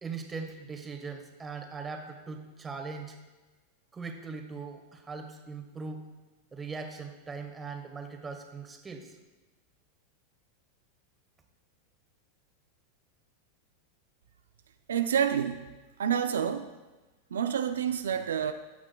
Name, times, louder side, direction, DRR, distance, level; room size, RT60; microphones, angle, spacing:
voice 1, 0.0-3.2 3.9-6.1 6.5-9.1, right 4 dB, 20° right, 4 dB, 1.2 m, -40 dB
voice 2, 14.9-15.7 16.0-16.7 17.3-18.5, right 8 dB, 85° right, 8 dB, 0.4 m, -28 dB
16.0 x 6.0 x 2.2 m, 1.2 s
hypercardioid pair, 110°, 0 cm